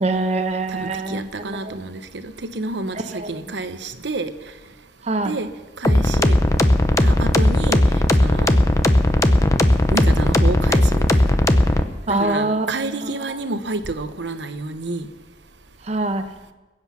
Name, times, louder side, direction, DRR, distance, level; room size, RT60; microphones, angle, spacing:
voice 1, 0.0-1.8 3.1-3.3 5.0-5.4 12.1-13.1 15.9-16.3, right 2 dB, 40° right, 7 dB, 1.1 m, -24 dB
voice 2, 0.7-3.0 3.3-4.3 5.2-5.5 5.8-6.3 7.0-7.8 8.2-8.6 9.9-11.3 12.1-15.1, right 2 dB, 90° right, 9 dB, 1.0 m, -29 dB
sound 1, 5.8-11.8, left 1 dB, 20° left, 0.7 m, -16 dB
21.5 x 8.0 x 5.8 m, 1.2 s
head